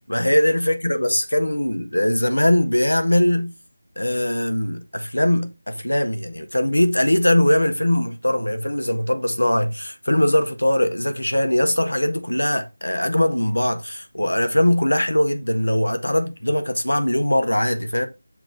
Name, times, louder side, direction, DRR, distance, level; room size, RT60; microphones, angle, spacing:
voice 1, 0.1-3.5 4.0-18.1, left 1 dB, 75° left, 1.5 m, -21 dB
7.4 x 3.9 x 3.9 m
figure-of-eight pair, 165°, 0 cm